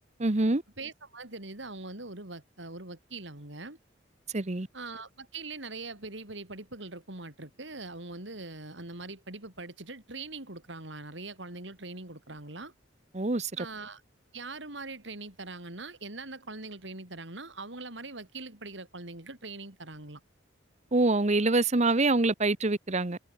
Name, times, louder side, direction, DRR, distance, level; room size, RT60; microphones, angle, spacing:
voice 1, 0.2-0.6 4.3-4.7 13.1-13.7 20.9-23.2, right 2 dB, 40° right, 1.1 m, -25 dB
voice 2, 0.8-3.8 4.7-12.7 13.6-14.0 14.3-20.2, right 3 dB, 70° right, 4.7 m, -42 dB
head